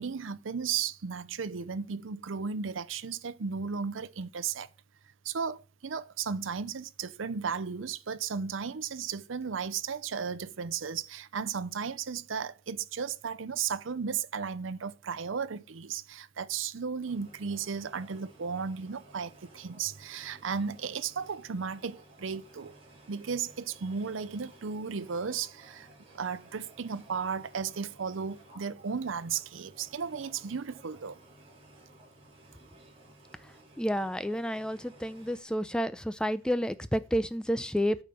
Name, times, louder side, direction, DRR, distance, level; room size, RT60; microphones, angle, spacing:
voice 1, 0.0-4.7 5.2-22.8 23.1-25.9 26.1-31.2, right 6 dB, 75° right, 0.6 m, -35 dB
sound 1, 17.0-35.4, right 1 dB, 30° right, 3.6 m, -56 dB
voice 2, 33.8-38.0, equal, 5° left, 0.5 m, -30 dB
9.0 x 5.1 x 6.8 m
head